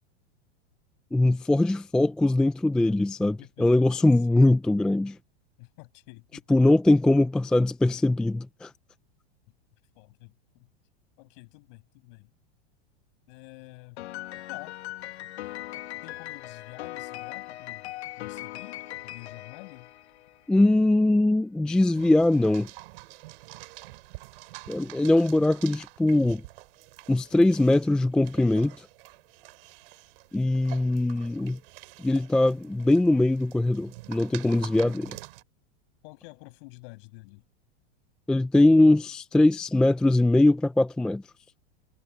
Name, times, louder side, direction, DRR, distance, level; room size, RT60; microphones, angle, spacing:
voice 1, 1.1-5.2 6.5-8.7 20.5-22.7 24.7-26.4 27.1-28.8 30.3-31.6 32.0-35.2 38.3-41.2, left 2 dB, 5° left, 0.4 m, -21 dB
voice 2, 3.2-4.1 5.6-6.6 10.0-10.7 11.2-12.3 13.3-14.0 14.5-14.8 15.9-19.9 36.0-37.4, left 29 dB, 55° left, 7.7 m, -48 dB
Piano, 14.0-20.5, left 16 dB, 80° left, 1.8 m, -39 dB
sound 1, 21.9-35.4, right 22 dB, 60° right, 3.2 m, -47 dB
supercardioid pair, 150°, 32 cm